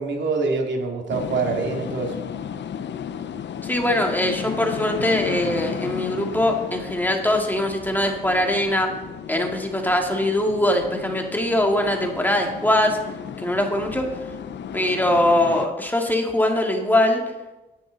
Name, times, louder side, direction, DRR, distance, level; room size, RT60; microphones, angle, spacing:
voice 1, 0.0-2.2, right 4 dB, 80° right, 2 dB, 2.5 m, -25 dB
sound 1, 1.1-15.7, left 8 dB, 75° left, 0.8 m, -34 dB
voice 2, 3.6-8.9 9.3-13.0 13.4-14.1 14.7-17.2, left 1 dB, 10° left, 2 dB, 2.2 m, -22 dB
18.0 x 10.5 x 4.0 m, 1.0 s
cardioid pair, 105°, 19 cm